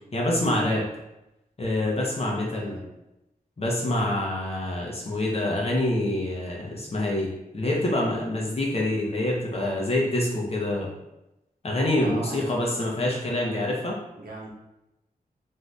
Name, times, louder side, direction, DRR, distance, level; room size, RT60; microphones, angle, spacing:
voice 1, 0.1-0.8 1.6-2.8 3.6-7.3 7.5-10.9 11.6-14.0, left 1 dB, 40° left, -2 dB, 0.8 m, -26 dB
voice 2, 2.5-2.9 11.9-12.5 14.2-14.5, right 2 dB, 80° right, -2 dB, 0.9 m, -40 dB
2.7 x 2.5 x 3.2 m, 0.91 s
wide cardioid pair, 80°, 16 cm